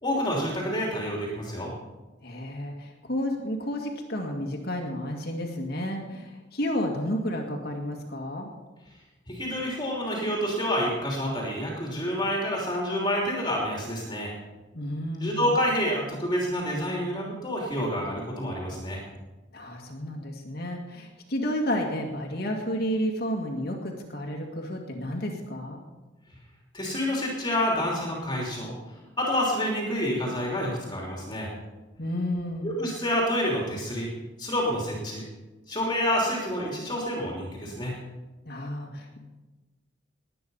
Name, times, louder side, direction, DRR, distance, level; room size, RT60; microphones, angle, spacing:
voice 1, 0.0-1.7 9.3-14.3 15.2-19.0 26.7-28.7 29.2-31.5 32.6-34.1 34.4-35.2 35.7-38.0, equal, 25° left, -2 dB, 3.0 m, -28 dB
voice 2, 2.2-8.5 14.7-15.5 19.5-25.8 32.0-32.7 38.5-39.2, equal, 55° left, 1 dB, 2.2 m, -31 dB
20.0 x 9.2 x 5.5 m, 1.2 s
head